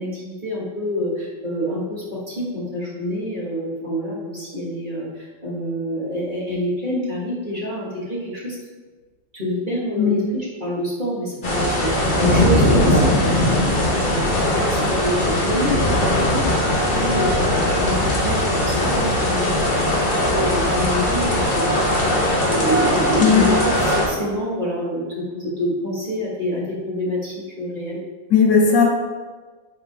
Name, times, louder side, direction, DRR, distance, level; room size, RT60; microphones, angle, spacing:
voice 1, 0.0-8.5 9.3-17.3 17.6-22.0 22.5-28.0, equal, 25° right, -7 dB, 1.6 m, -27 dB
sound 1, 11.4-24.1, left 1 dB, 35° left, 0.9 m, -19 dB
voice 2, 28.3-28.8, left 6 dB, 70° left, -1 dB, 1.5 m, -15 dB
9.5 x 3.8 x 3.5 m, 1.4 s
omnidirectional pair, 2.0 m